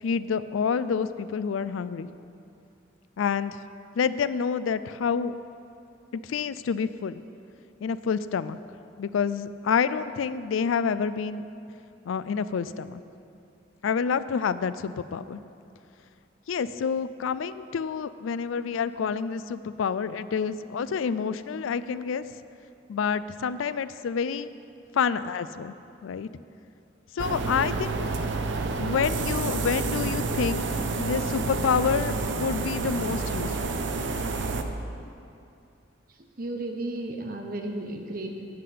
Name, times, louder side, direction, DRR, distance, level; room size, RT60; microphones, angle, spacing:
voice 1, 0.0-2.1 3.2-3.6 4.0-5.4 6.1-7.2 7.8-8.6 9.0-11.4 12.1-13.0 13.8-15.4 16.5-22.2 22.9-24.5 24.9-25.7 26.0-26.3 27.1-28.1 28.8-30.6 31.0-33.8, left 6 dB, 90° left, 15 dB, 0.4 m, -28 dB
sound 1, 27.2-34.6, right 3 dB, 70° right, 0.7 m, -29 dB
voice 2, 36.1-38.5, right 2 dB, 45° right, 3 dB, 1.0 m, -34 dB
10.5 x 5.8 x 8.4 m, 2.6 s
head